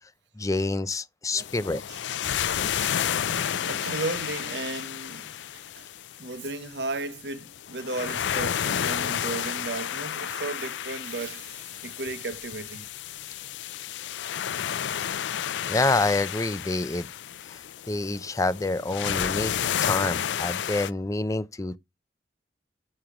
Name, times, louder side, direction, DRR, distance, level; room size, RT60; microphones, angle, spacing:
voice 1, 0.4-1.8 15.7-17.1 17.9-19.5 19.8-21.8, left 2 dB, 20° left, 0.4 m, -27 dB
voice 2, 1.3-2.0 3.3-5.9 6.2-12.8, right 3 dB, 70° right, 0.9 m, -35 dB
sound 1, 1.4-20.9, left 9 dB, 80° left, 0.4 m, -31 dB
8.6 x 3.2 x 6.0 m
head